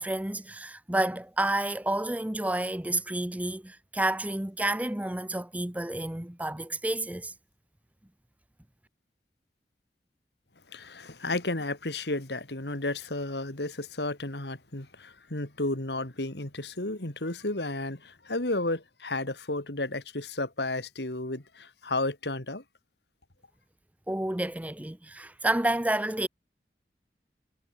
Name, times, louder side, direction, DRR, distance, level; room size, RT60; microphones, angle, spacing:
voice 1, 0.0-7.3 24.1-26.3, right 1 dB, 10° right, 0.6 m, -30 dB
voice 2, 10.7-22.6, left 2 dB, 75° left, 2.9 m, -32 dB
head